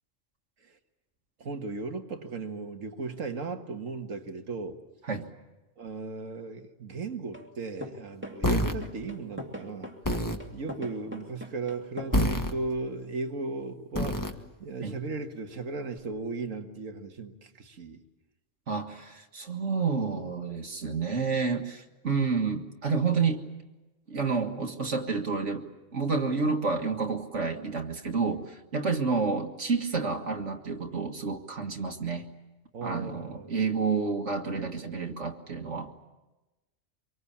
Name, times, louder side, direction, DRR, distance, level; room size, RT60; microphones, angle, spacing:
voice 1, 1.4-4.8 5.8-9.9 10.4-14.2 14.6-18.0 32.7-33.5, right 3 dB, 90° right, 6 dB, 2.0 m, -36 dB
sound 1, 7.3-7.5 7.8-12.2, equal, 10° right, 2.4 m, -41 dB
sound 2, 8.4-8.8 10.0-10.4 12.1-12.5 13.9-14.3, equal, 15° left, 1.6 m, -26 dB
voice 2, 18.7-23.4 24.1-32.3 32.8-35.9, right 4 dB, 70° right, 3 dB, 2.1 m, -29 dB
25.5 x 24.0 x 8.6 m, 1.1 s
omnidirectional pair, 1.3 m